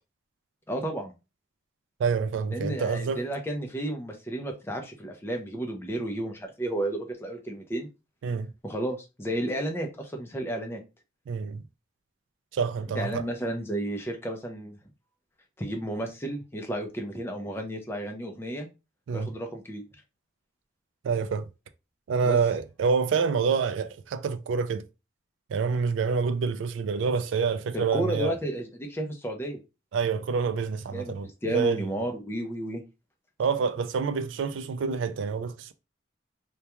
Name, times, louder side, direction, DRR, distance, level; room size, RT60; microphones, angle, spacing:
voice 1, 0.7-1.1 2.5-7.9 8.6-10.8 12.9-14.8 15.6-18.7 19.1-19.8 22.2-22.4 27.7-29.6 30.9-32.8, right 1 dB, 10° left, 0.4 m, -32 dB
voice 2, 2.0-3.2 8.2-8.5 11.3-11.6 12.5-13.2 19.1-19.3 21.0-21.5 22.1-24.9 25.5-28.3 29.9-32.1 33.4-35.7, right 5 dB, 75° right, 0.3 m, -27 dB
2.2 x 2.2 x 2.9 m
head